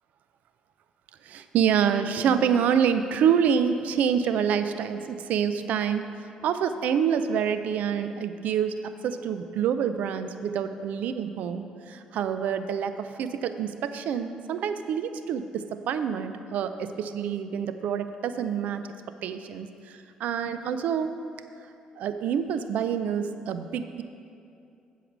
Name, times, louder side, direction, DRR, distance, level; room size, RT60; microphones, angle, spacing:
voice 1, 1.2-18.8 19.2-21.1 22.0-24.0, right 7 dB, 75° right, 10 dB, 0.5 m, -27 dB
7.9 x 4.8 x 7.3 m, 2.5 s
cardioid pair, 75°, 3 cm